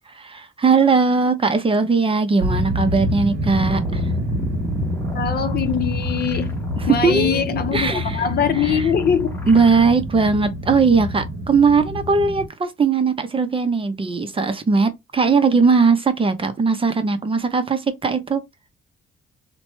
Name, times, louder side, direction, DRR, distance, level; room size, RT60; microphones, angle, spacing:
voice 1, 0.1-4.1 6.8-7.4 7.7-8.2 8.6-8.9 9.5-18.4, right 4 dB, 25° right, 0.6 m, -19 dB
sound 1, 2.4-12.5, equal, 55° right, 0.9 m, -26 dB
sound 2, 3.6-9.9, left 1 dB, 10° left, 0.9 m, -38 dB
voice 2, 5.1-6.6 6.9-9.4, left 8 dB, 50° left, 0.6 m, -22 dB
2.9 x 2.2 x 3.0 m
cardioid pair, 90°, 20 cm